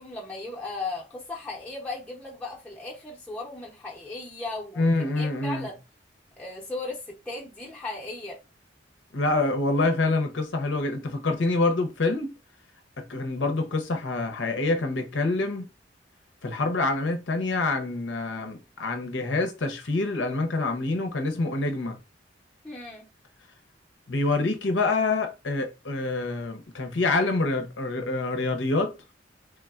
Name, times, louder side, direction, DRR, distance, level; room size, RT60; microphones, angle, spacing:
voice 1, 0.0-5.8 6.4-8.4 22.6-23.1, left 3 dB, 5° left, 0.6 m, -36 dB
voice 2, 4.8-5.7 9.1-12.3 13.0-15.7 16.4-22.0 24.1-28.9, left 2 dB, 85° left, 0.7 m, -26 dB
3.3 x 2.2 x 2.3 m
head